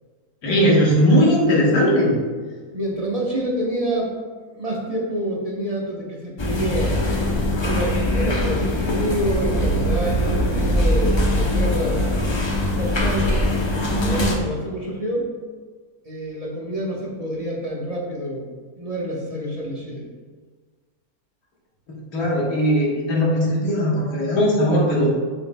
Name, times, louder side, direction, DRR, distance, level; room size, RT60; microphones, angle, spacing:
voice 1, 0.4-2.2 21.9-25.1, equal, 80° left, -3 dB, 1.8 m, -18 dB
voice 2, 2.7-4.2 4.5-7.0 7.6-12.2 12.8-13.4 14.0-15.3 16.0-18.5 18.8-20.1, right 1 dB, 30° right, -3 dB, 0.9 m, -27 dB
sound 1, 6.4-14.4, left 1 dB, 40° left, 0.3 m, -22 dB
6.9 x 6.3 x 2.2 m, 1.5 s
omnidirectional pair, 1.6 m